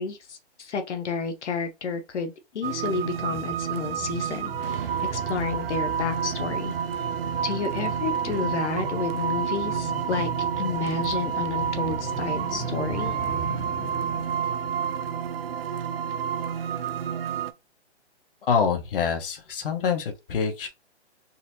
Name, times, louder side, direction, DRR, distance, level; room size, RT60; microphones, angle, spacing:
voice 1, 0.0-7.1 7.4-10.3 10.6-13.1, left 5 dB, 90° left, 0.9 m, -31 dB
sound 1, 2.6-17.5, right 7 dB, 60° right, 0.5 m, -29 dB
sound 2, 2.9-16.0 16.3-16.4, right 1 dB, ahead, 0.6 m, -39 dB
voice 2, 18.4-20.7, left 6 dB, 55° left, 1.0 m, -26 dB
4.1 x 2.7 x 2.7 m
hypercardioid pair, 165°, 34 cm